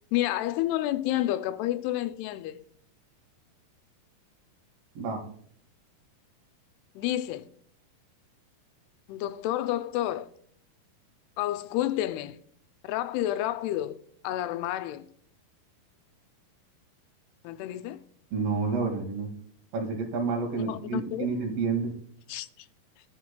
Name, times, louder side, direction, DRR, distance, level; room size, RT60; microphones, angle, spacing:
voice 1, 0.1-2.6 7.0-7.5 9.1-10.3 11.4-12.4 12.8-14.0 14.2-15.1 17.4-18.0 20.6-21.3 22.3-22.7, left 14 dB, 90° left, 2.6 m, -30 dB
voice 2, 18.3-19.3 19.7-21.9, right 4 dB, 75° right, 3.9 m, -29 dB
16.0 x 9.3 x 2.2 m
omnidirectional pair, 4.5 m